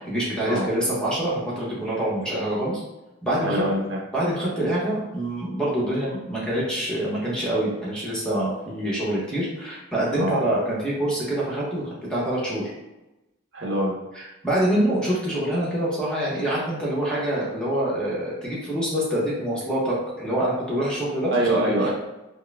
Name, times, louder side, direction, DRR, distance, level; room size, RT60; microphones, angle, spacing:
voice 1, 0.0-2.8 3.2-3.6 4.1-12.7 14.1-21.6, right 1 dB, 5° left, -7 dB, 1.0 m, -25 dB
voice 2, 3.4-4.0 10.1-10.4 13.5-13.9 21.3-21.9, right 1 dB, 60° right, -2 dB, 0.9 m, -24 dB
6.4 x 2.2 x 2.2 m, 0.99 s
head